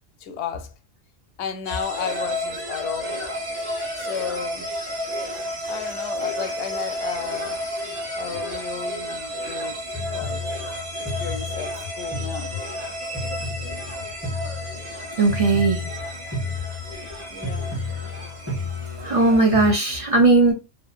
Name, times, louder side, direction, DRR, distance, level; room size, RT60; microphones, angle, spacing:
voice 1, 0.2-0.7 1.4-3.2 4.0-4.7 5.7-7.6 8.2-10.5 11.0-12.6 17.3-17.8, left 7 dB, 90° left, 0.9 m, -33 dB
sound 1, 1.6-19.8, equal, 70° right, 1.3 m, -33 dB
sound 2, 1.8-19.7, left 2 dB, 15° right, 1.1 m, -34 dB
voice 2, 15.2-15.8 17.8-17.9 18.4-20.5, right 3 dB, 35° right, 0.7 m, -19 dB
2.7 x 2.4 x 2.4 m
omnidirectional pair, 1.1 m